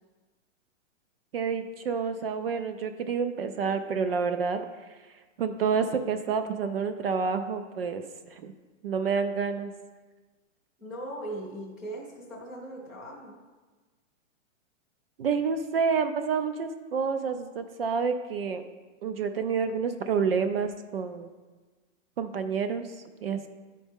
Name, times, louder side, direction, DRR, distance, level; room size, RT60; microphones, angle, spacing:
voice 1, 1.3-4.7 5.4-8.0 8.3-8.5 8.8-9.7 15.2-18.6 19.0-21.3 22.2-22.9 23.2-23.5, right 6 dB, 50° right, 9 dB, 0.5 m, -28 dB
voice 2, 10.8-13.3, right 1 dB, ahead, -8 dB, 0.6 m, -39 dB
11.0 x 4.2 x 3.5 m, 1.3 s
hypercardioid pair, 175°, 39 cm